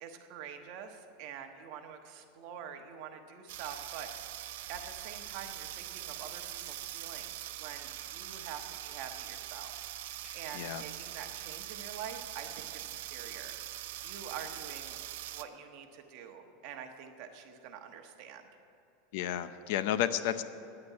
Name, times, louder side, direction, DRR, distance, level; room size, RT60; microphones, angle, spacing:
voice 1, 0.0-4.4 4.7-9.7 10.0-13.8 14.0-15.0 15.3-18.5, right 7 dB, 50° right, 5 dB, 1.2 m, -46 dB
sound 1, 3.5-15.4, right 14 dB, 70° right, 0.6 m, -43 dB
voice 2, 10.2-10.8 19.1-20.4, left 11 dB, 60° left, 12 dB, 0.6 m, -32 dB
9.7 x 8.6 x 9.5 m, 2.9 s
supercardioid pair, 160°, 0 cm